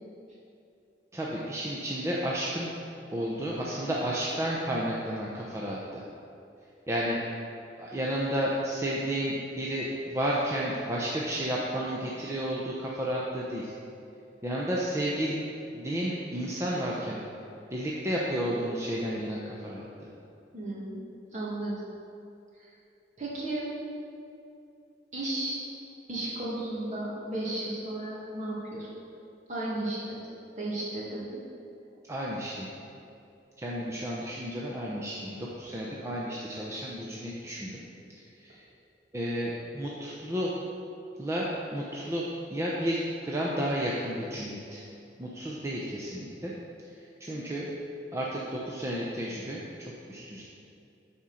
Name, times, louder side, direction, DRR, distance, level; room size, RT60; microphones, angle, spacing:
voice 1, 1.1-2.7 3.1-6.0 6.9-7.2 7.8-13.7 14.4-15.4 15.7-17.2 17.7-20.1 32.0-32.7 33.6-37.8 38.4-38.6 39.1-40.6 41.2-44.8 45.2-46.5 46.9-47.7 48.1-50.4, equal, 15° right, -5 dB, 0.7 m, -32 dB
voice 2, 20.5-21.0 21.3-21.8 22.6-22.7 23.2-23.7 25.1-25.6 26.1-28.9 29.5-30.3 30.6-31.4, right 1 dB, 45° right, -6 dB, 2.1 m, -34 dB
8.9 x 4.4 x 6.3 m, 2.7 s
head